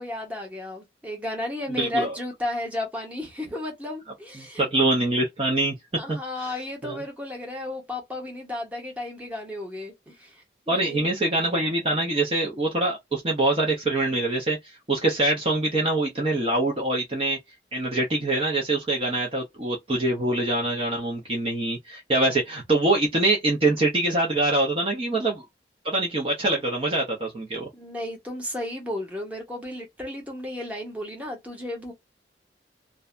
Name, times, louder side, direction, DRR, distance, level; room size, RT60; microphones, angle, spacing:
voice 1, 0.0-4.7 6.0-11.1 27.7-31.9, left 1 dB, 10° right, 0.9 m, -33 dB
voice 2, 1.8-2.1 4.4-5.8 6.1-6.5 6.8-7.0 10.7-17.4 17.7-25.4 25.8-27.7, right 2 dB, 30° right, 0.6 m, -24 dB
2.6 x 2.2 x 2.4 m
head